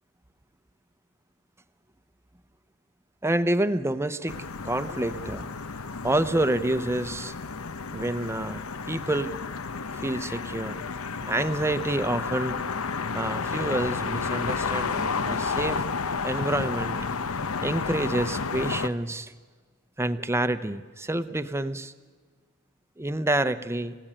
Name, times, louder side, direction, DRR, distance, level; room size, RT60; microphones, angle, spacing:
voice 1, 3.2-5.5 6.0-7.3 7.9-9.3 9.9-10.8 11.3-12.6 13.1-15.9 16.2-17.0 17.6-19.3 20.0-21.9 23.0-24.0, right 1 dB, 10° right, 11 dB, 0.8 m, -28 dB
sound 1, 4.3-18.9, left 5 dB, 70° left, 0.9 m, -31 dB
29.5 x 16.0 x 8.9 m, 1.5 s
head